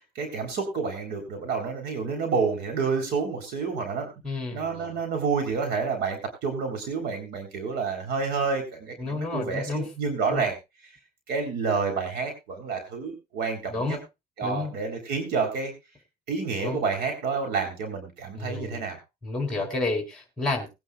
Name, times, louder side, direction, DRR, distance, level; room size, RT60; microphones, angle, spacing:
voice 1, 0.2-4.1 4.5-10.6 11.3-14.0 14.4-15.7 16.3-19.0 19.5-19.7, right 5 dB, 80° right, 4 dB, 3.8 m, -29 dB
voice 2, 4.2-5.0 9.0-9.9 10.3-10.4 13.7-14.0 14.4-14.7 16.6-16.8 18.4-18.8 19.2-20.7, left 3 dB, 5° left, 2 dB, 3.9 m, -30 dB
20.0 x 9.7 x 2.4 m, 0.24 s
cardioid pair, 110°, 17 cm